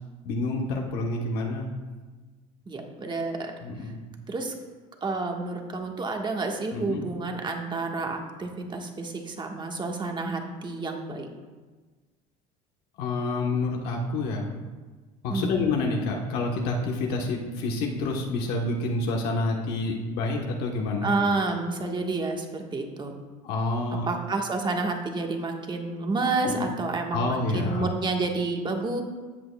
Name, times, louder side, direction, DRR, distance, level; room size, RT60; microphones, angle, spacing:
voice 1, 0.2-1.7 3.6-4.0 6.7-7.0 13.0-14.5 15.2-21.1 23.4-24.1 26.4-26.7 27.1-27.9, left 2 dB, 75° left, 0 dB, 1.2 m, -28 dB
voice 2, 2.7-3.5 4.3-4.5 5.0-11.3 15.3-15.6 21.0-23.1 24.1-29.0, right 3 dB, 30° right, 2 dB, 1.4 m, -29 dB
13.5 x 7.7 x 2.3 m, 1.3 s
supercardioid pair, 90°, 17 cm